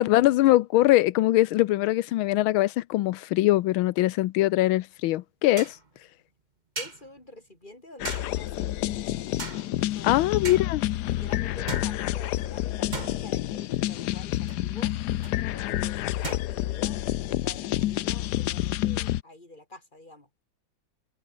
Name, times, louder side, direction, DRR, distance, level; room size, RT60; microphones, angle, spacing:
voice 1, 0.0-5.8 10.0-10.8, left 16 dB, 90° left, 1.5 m, -22 dB
sound 1, 4.4-4.5 5.6-5.9 6.8-7.2 8.0-8.5 9.4-9.9 10.4-10.9 11.7-12.5 12.9-13.8 14.5-14.7 15.2-15.4 16.2-16.4, right 4 dB, 25° right, 1.5 m, -38 dB
voice 2, 6.8-9.1 9.8-10.5 11.1-15.0 15.4-20.3, left 1 dB, 20° left, 5.8 m, -48 dB
sound 2, 8.0-19.2, left 14 dB, 70° left, 1.0 m, -29 dB
open air
omnidirectional pair, 2.2 m